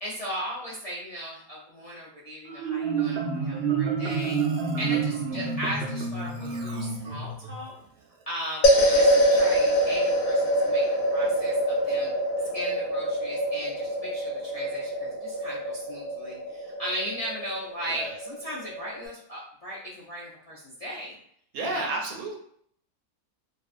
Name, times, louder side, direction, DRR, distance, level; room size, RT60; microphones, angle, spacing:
voice 1, 0.0-4.4 4.8-7.7 8.3-10.8 11.1-12.1 12.5-21.2 21.6-22.0, equal, 50° left, -9 dB, 0.4 m, -37 dB
Marimba xylophone, 2.5-7.6, right 5 dB, 65° right, 0.6 m, -28 dB
sound 1, 8.6-19.1, equal, 75° left, 0.9 m, -25 dB
voice 2, 21.5-22.4, right 2 dB, 90° right, 1 dB, 1.1 m, -31 dB
2.5 x 2.3 x 2.4 m, 0.66 s
omnidirectional pair, 1.5 m